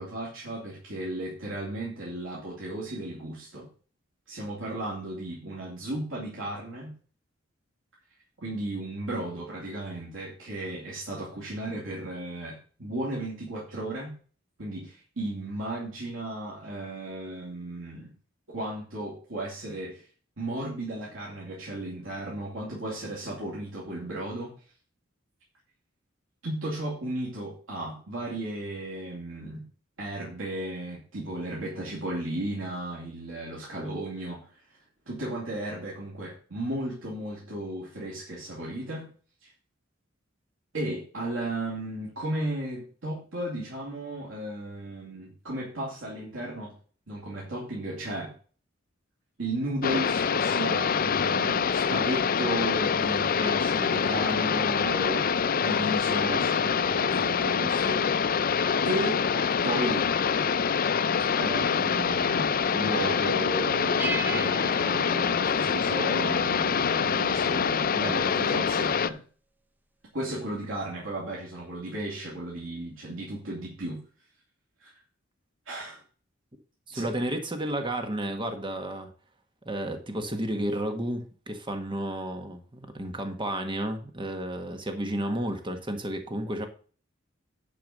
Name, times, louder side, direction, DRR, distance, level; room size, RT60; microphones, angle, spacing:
voice 1, 0.0-3.7 4.3-7.0 8.4-14.1 14.6-18.1 18.5-20.1 20.4-24.5 26.4-29.7 30.0-34.6 35.1-39.1 39.4-39.5 40.7-46.7 47.1-48.3 49.4-58.0 58.8-59.2 59.6-60.1 61.4-69.2 70.1-74.0 74.8-74.9 75.7-76.0 76.9-77.1, right 1 dB, 85° right, -4 dB, 3.0 m, -35 dB
sound 1, 49.8-69.1, left 6 dB, 45° left, 0.5 m, -25 dB
sound 2, 64.0-66.2, right 4 dB, 10° right, 0.6 m, -37 dB
voice 2, 76.9-79.1 79.6-86.7, right 1 dB, 25° right, 5 dB, 1.5 m, -32 dB
11.0 x 4.7 x 6.7 m, 0.40 s
head